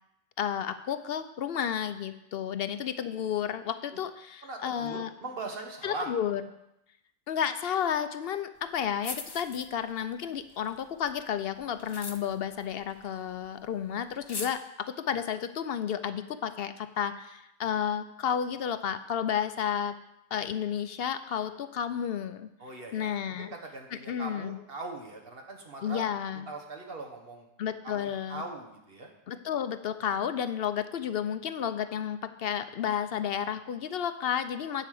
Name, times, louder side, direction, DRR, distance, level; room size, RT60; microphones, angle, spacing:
voice 1, 0.4-5.1 5.8-6.4 7.3-20.0 20.3-22.5 22.9-23.5 23.9-24.6 25.8-26.5 27.6-28.4 29.3-34.9, left 8 dB, 70° left, 11 dB, 0.8 m, -32 dB
voice 2, 4.4-6.1 22.6-23.1 23.4-26.1 26.5-27.4 27.8-29.1, right 3 dB, 60° right, 2 dB, 1.6 m, -40 dB
sound 1, 8.7-8.8 9.0-10.1 10.4-13.5 13.7-13.8 14.1-14.5, left 4 dB, 25° left, 0.6 m, -41 dB
10.0 x 5.0 x 7.6 m, 0.85 s
omnidirectional pair, 1.1 m